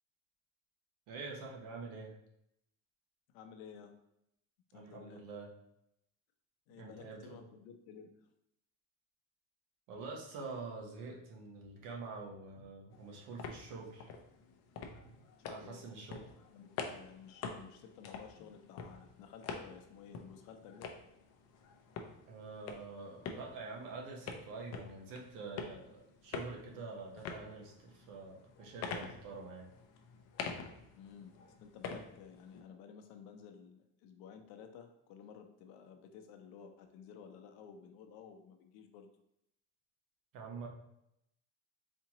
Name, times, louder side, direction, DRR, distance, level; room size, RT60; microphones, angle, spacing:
voice 1, 1.1-2.1 4.7-5.5 6.8-7.4 9.9-14.1 14.8-15.2 15.5-16.2 22.3-29.7 40.3-40.7, right 4 dB, 65° right, 0 dB, 1.0 m, -46 dB
voice 2, 3.3-3.9 4.7-5.2 6.7-8.3 15.4-15.8 16.5-20.9 30.9-39.1, left 7 dB, 90° left, 5 dB, 0.7 m, -54 dB
sound 1, 12.9-32.6, left 5 dB, 45° left, 0.5 m, -47 dB
4.3 x 2.8 x 2.9 m, 0.78 s
cardioid pair, 160°, 35 cm